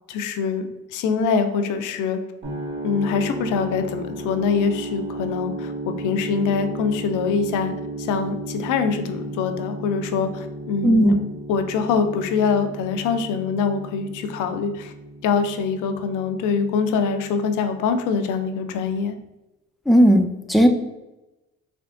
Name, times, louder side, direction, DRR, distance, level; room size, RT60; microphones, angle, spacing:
voice 1, 0.1-2.2 2.8-11.1 11.5-14.9 15.2-19.1, left 5 dB, 90° left, 8 dB, 0.5 m, -24 dB
sound 1, 2.4-18.4, right 2 dB, 35° right, 1.4 m, -34 dB
voice 2, 10.8-11.1 19.9-20.7, equal, ahead, 5 dB, 0.3 m, -15 dB
3.4 x 3.4 x 2.5 m, 1.0 s
cardioid pair, 90°, 30 cm